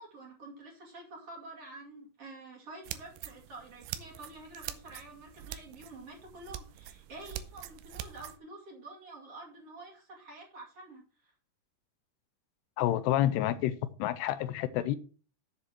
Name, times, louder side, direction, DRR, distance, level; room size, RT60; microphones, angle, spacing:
voice 1, 0.0-11.3, right 2 dB, 40° right, 3.0 m, -48 dB
sound 1, 2.8-8.4, right 12 dB, 80° right, 2.8 m, -44 dB
voice 2, 12.8-15.0, left 12 dB, 85° left, 2.6 m, -29 dB
7.8 x 7.0 x 6.0 m
omnidirectional pair, 4.8 m